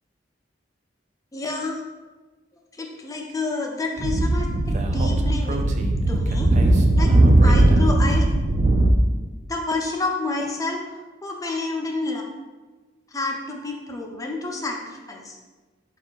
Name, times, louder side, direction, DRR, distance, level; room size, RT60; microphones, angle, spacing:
voice 1, 1.3-1.8 2.7-5.7 6.1-6.5 7.0-7.1 7.4-8.3 9.5-10.8 11.2-12.2 13.1-15.4, left 3 dB, 20° left, 1 dB, 0.5 m, -29 dB
Speech / Wind, 4.0-8.9, right 1 dB, 40° right, 0.3 m, -18 dB
4.3 x 2.4 x 4.4 m, 1.2 s
head